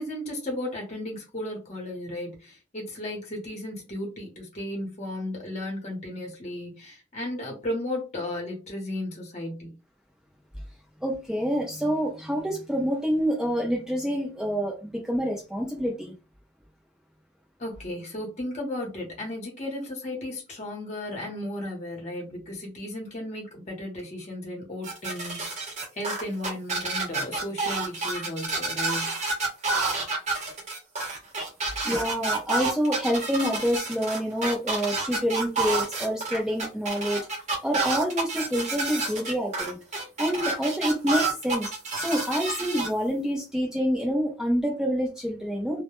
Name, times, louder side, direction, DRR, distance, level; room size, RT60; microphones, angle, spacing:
voice 1, 0.0-9.7 17.6-25.6 25.9-29.2, left 1 dB, 40° left, 0.8 m, -35 dB
voice 2, 11.0-16.1 31.8-37.3 37.6-41.7 42.0-45.8, equal, 5° right, 0.6 m, -27 dB
sound 1, 24.8-42.9, right 3 dB, 40° right, 0.7 m, -29 dB
2.1 x 2.1 x 2.9 m
head